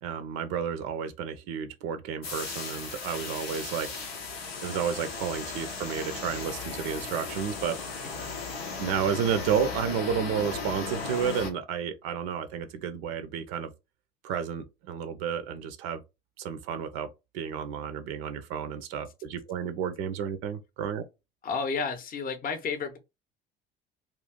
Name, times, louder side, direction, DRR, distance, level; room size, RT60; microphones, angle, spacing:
voice 1, 0.0-3.9 4.6-7.8 8.8-13.7 14.2-16.0 16.4-17.1 17.3-21.0, right 7 dB, 55° right, 0.5 m, -31 dB
sound 1, 2.2-11.5, left 4 dB, 90° left, 0.6 m, -36 dB
voice 2, 21.4-23.0, left 5 dB, 30° left, 0.6 m, -31 dB
2.5 x 2.3 x 3.5 m
figure-of-eight pair, 60°, 30 cm